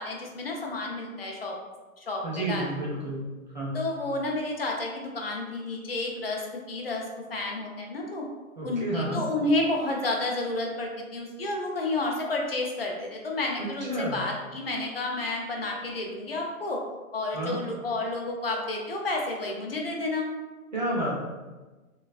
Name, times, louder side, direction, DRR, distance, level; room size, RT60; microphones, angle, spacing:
voice 1, 0.0-1.6 2.0-2.7 3.7-6.4 6.7-7.0 7.3-8.3 8.6-16.8 17.1-20.3, left 2 dB, 45° left, 0 dB, 0.4 m, -30 dB
voice 2, 2.2-3.2 3.5-3.8 8.6-9.3 13.6-14.2 17.3-17.6 20.7-21.2, right 1 dB, 35° right, -5 dB, 0.4 m, -30 dB
3.1 x 2.3 x 2.3 m, 1.2 s
hypercardioid pair, 165°, 43 cm